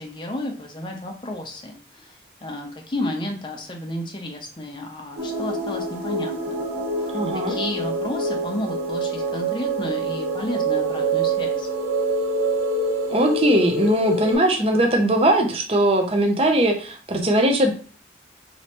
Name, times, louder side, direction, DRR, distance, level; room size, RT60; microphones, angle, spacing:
voice 1, 0.0-6.6 7.0-7.1 7.5-11.7, left 1 dB, 25° left, 1 dB, 0.6 m, -32 dB
sound 1, 5.2-14.3, right 2 dB, 80° right, 1.2 m, -26 dB
voice 2, 7.1-7.6 13.1-17.7, right 1 dB, 35° right, 3 dB, 0.6 m, -20 dB
3.1 x 3.0 x 2.9 m, 0.40 s
head